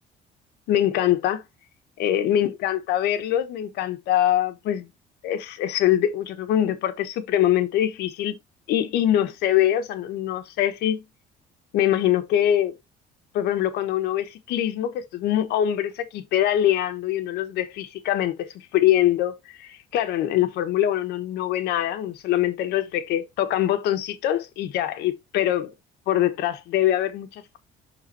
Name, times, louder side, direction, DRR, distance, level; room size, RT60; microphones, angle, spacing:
voice 1, 0.7-1.4 2.0-4.9 5.2-8.4 8.7-11.0 11.7-12.7 13.3-18.5 18.7-25.7 26.1-27.6, left 11 dB, 80° left, 1.3 m, -23 dB
11.5 x 3.9 x 2.8 m
cardioid pair, 135°, 17 cm